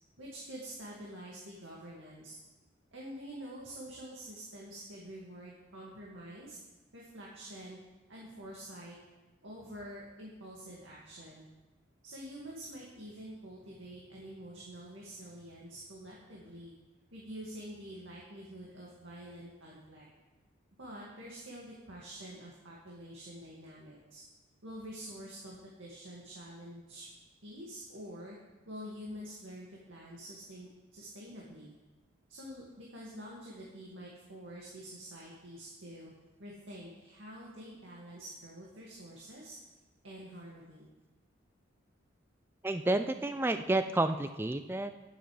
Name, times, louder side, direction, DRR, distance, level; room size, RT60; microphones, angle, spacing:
voice 1, 0.2-2.4 2.9-6.6 6.9-7.8 8.1-9.0 9.4-11.5 12.0-16.7 17.1-20.1 20.8-24.2 24.6-27.1 27.4-28.4 28.7-31.8 32.3-36.1 36.4-39.6 40.0-40.9, equal, 80° right, -5 dB, 2.1 m, -47 dB
voice 2, 42.6-44.9, right 2 dB, 10° right, 9 dB, 0.3 m, -30 dB
20.0 x 8.0 x 3.3 m, 1.1 s
head